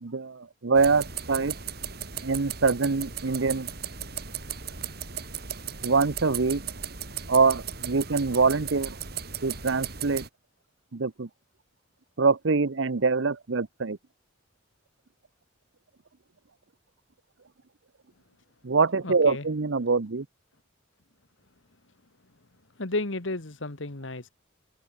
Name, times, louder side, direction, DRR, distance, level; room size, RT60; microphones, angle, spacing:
voice 1, 0.0-1.5 2.2-3.7 5.8-6.6 7.3-9.0 9.4-10.2 10.9-11.3 12.2-14.0 18.6-20.2, right 4 dB, 70° right, 0.8 m, -24 dB
sound 1, 0.7-10.3, right 7 dB, 55° right, 4.4 m, -36 dB
voice 2, 19.0-19.5 22.8-24.3, left 2 dB, 75° left, 1.8 m, -32 dB
open air
head